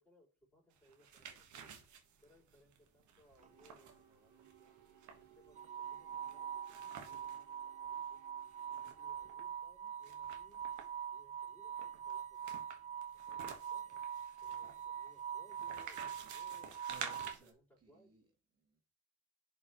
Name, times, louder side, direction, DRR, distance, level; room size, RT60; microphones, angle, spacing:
voice 1, 0.0-1.7 2.2-4.7 5.2-8.2 8.9-10.6 11.1-14.0 14.4-16.8 17.2-18.1, left 1 dB, 5° left, 4.3 m, -68 dB
sound 1, 0.8-7.4 7.8-7.9 8.2-9.4 10.0-11.1 11.8-17.5, right 7 dB, 70° right, 1.5 m, -51 dB
sound 2, 3.3-9.4, right 8 dB, 85° right, 1.8 m, -64 dB
sound 3, 3.4-3.6 5.6-17.3, right 8 dB, 25° right, 0.4 m, -44 dB
voice 2, 8.6-9.0 11.7-11.9 16.9-18.3 18.6-18.8, right 4 dB, 55° right, 2.7 m, -63 dB
11.0 x 5.5 x 3.1 m
cardioid pair, 90°, 30 cm